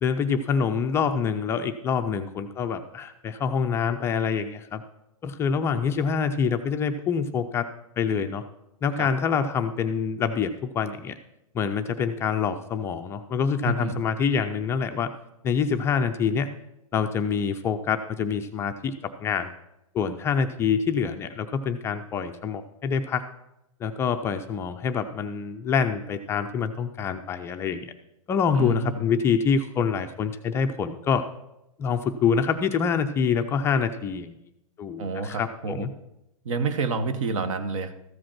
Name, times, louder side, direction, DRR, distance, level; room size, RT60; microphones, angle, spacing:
voice 1, 0.0-4.8 5.2-7.7 8.0-8.4 8.8-11.1 11.5-15.1 15.4-16.5 16.9-18.9 19.2-19.5 19.9-23.2 23.8-27.9 28.3-31.3 31.8-34.4 34.8-35.9, left 6 dB, 15° left, 6 dB, 0.3 m, -26 dB
voice 2, 13.6-14.0 28.6-29.0 35.0-35.9 36.4-37.9, right 4 dB, 65° right, 11 dB, 1.1 m, -28 dB
14.0 x 5.0 x 5.8 m, 0.86 s
hypercardioid pair, 140°, 18 cm